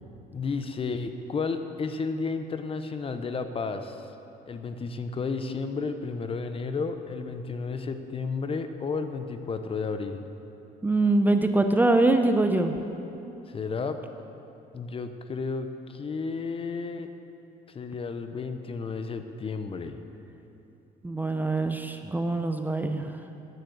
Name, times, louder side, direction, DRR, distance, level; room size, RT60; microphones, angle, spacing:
voice 1, 0.3-4.1 4.5-10.3 13.5-14.0 14.7-17.1 17.7-20.0, left 4 dB, 35° left, 8 dB, 0.8 m, -32 dB
voice 2, 10.8-12.8 21.0-23.2, right 2 dB, 10° right, 6 dB, 0.6 m, -23 dB
10.5 x 9.6 x 7.9 m, 2.8 s
cardioid pair, 110°, 17 cm